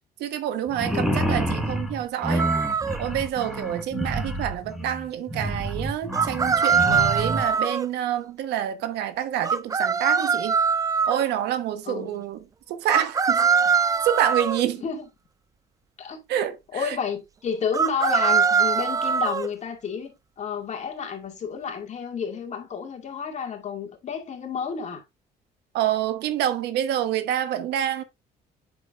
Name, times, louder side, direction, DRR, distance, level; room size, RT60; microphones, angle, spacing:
voice 1, 0.2-2.5 3.0-10.5 11.1-13.7 14.0-14.8 16.3-17.0 25.7-28.0, right 11 dB, 80° right, 1.1 m, -27 dB
sound 1, 0.7-7.5, right 1 dB, ahead, 1.6 m, -28 dB
voice 2, 0.9-1.4 11.9-12.2 14.8-15.0 16.0-16.2 16.7-25.0, left 6 dB, 45° left, 2.1 m, -31 dB
sound 2, 2.4-3.0 6.1-7.9 9.4-11.2 12.9-14.6 17.7-19.5, right 6 dB, 20° right, 0.3 m, -22 dB
7.9 x 6.2 x 2.5 m
cardioid pair, 110°, 17 cm